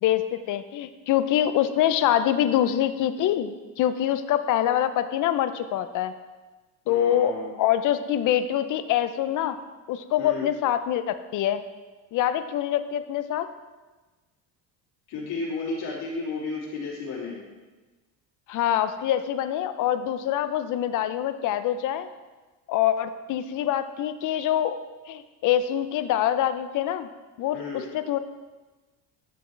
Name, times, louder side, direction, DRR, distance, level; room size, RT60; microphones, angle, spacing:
voice 1, 0.0-6.1 6.9-9.6 9.9-11.6 12.1-13.5 18.5-22.1 22.7-24.8 25.1-27.1 27.4-28.2, left 11 dB, 50° left, 11 dB, 0.6 m, -25 dB
voice 2, 6.8-7.6 10.2-10.5 15.1-17.4 27.5-27.9, left 3 dB, 70° left, -5 dB, 2.9 m, -33 dB
12.0 x 5.6 x 3.2 m, 1.2 s
cardioid pair, 130°, 39 cm